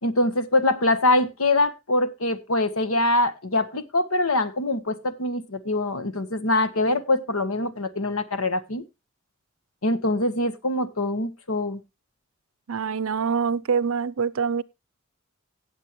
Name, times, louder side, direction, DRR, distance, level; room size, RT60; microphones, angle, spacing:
voice 1, 0.0-8.8 9.8-11.8, left 2 dB, 85° left, 1.4 m, -24 dB
voice 2, 12.7-14.6, right 6 dB, 80° right, 0.6 m, -25 dB
17.5 x 7.6 x 3.1 m
head